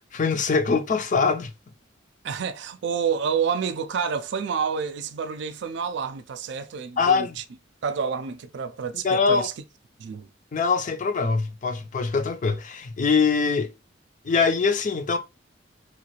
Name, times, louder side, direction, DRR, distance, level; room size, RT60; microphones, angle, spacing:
voice 1, 0.1-1.5 7.0-7.4 9.0-9.5 10.5-13.7 14.2-15.2, left 5 dB, 40° left, 0.4 m, -23 dB
voice 2, 2.2-7.3 7.8-9.5 10.0-10.3, right 6 dB, 65° right, 0.4 m, -28 dB
3.1 x 2.4 x 3.0 m
head